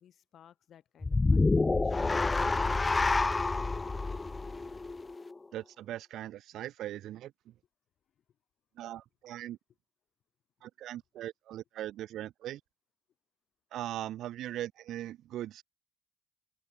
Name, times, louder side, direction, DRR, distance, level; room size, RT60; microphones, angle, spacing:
voice 1, 0.0-2.1 8.2-8.3, left 9 dB, 65° left, 3.8 m, -60 dB
sound 1, 1.0-5.4, left 3 dB, 25° left, 0.3 m, -28 dB
voice 2, 5.5-7.5 8.8-9.6 10.6-12.6 13.7-15.6, right 13 dB, 80° right, 0.3 m, -40 dB
cardioid pair, 90°, 0 cm